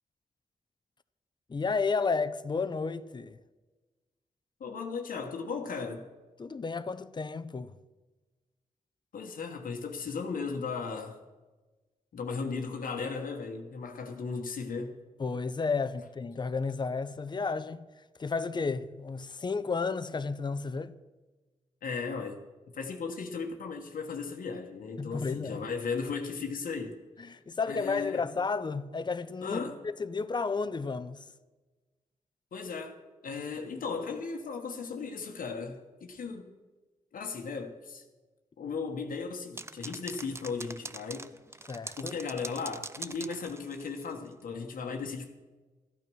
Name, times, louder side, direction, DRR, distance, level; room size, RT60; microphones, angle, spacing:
voice 1, 1.5-3.4 6.4-7.7 15.2-17.9 18.2-20.9 25.0-25.7 27.2-31.3 41.7-42.2, left 4 dB, 30° left, 0.6 m, -32 dB
voice 2, 4.6-6.1 9.1-11.2 12.1-15.0 21.8-22.4 22.7-27.0 27.7-28.3 29.4-29.8 32.5-33.0 33.2-36.5 37.1-38.0 38.6-41.3 42.0-45.3, left 5 dB, 85° left, 1.2 m, -36 dB
sound 1, 39.6-44.1, right 2 dB, 20° right, 0.6 m, -43 dB
14.0 x 9.2 x 6.2 m
cardioid pair, 85°, 14 cm